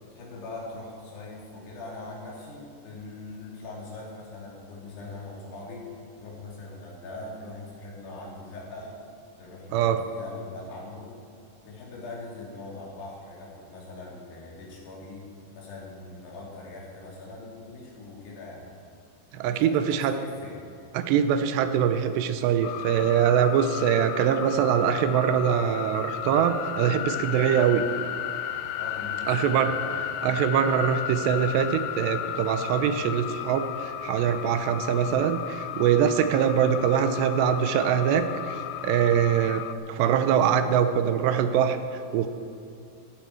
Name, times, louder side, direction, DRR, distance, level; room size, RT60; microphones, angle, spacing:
voice 1, 0.0-5.9 6.2-9.0 9.4-11.2 11.6-18.7 19.4-20.6 28.8-30.1, left 2 dB, 70° left, -4 dB, 4.9 m, -41 dB
voice 2, 19.3-20.1 20.9-27.8 29.3-29.7 30.2-39.6 39.9-42.3, right 8 dB, 85° right, 9 dB, 2.9 m, -23 dB
sound 1, 22.6-39.8, left 11 dB, 90° left, 2.1 m, -34 dB
14.5 x 14.0 x 4.6 m, 2.6 s
omnidirectional pair, 4.9 m